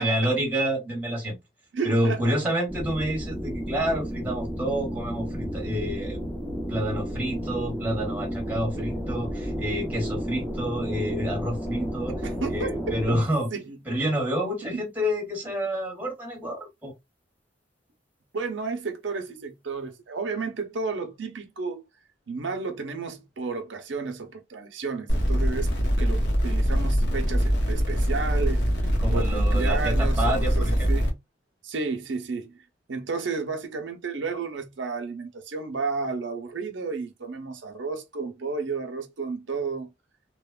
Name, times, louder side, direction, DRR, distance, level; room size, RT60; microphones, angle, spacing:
voice 1, 0.0-1.4 1.8-6.2 6.7-12.1 12.5-13.5 13.9-16.9 29.0-30.9, equal, 10° right, 1.0 m, -28 dB
voice 2, 1.7-2.3 8.8-9.0 12.1-13.0 13.5-13.8 14.7-14.8 18.3-21.8 22.3-28.7 29.1-31.2 31.6-32.5 32.9-39.9, right 4 dB, 85° right, 0.6 m, -32 dB
sound 1, 2.7-13.2, equal, 10° left, 0.6 m, -32 dB
sound 2, 25.1-31.1, equal, 65° left, 0.8 m, -23 dB
2.9 x 2.1 x 2.2 m
head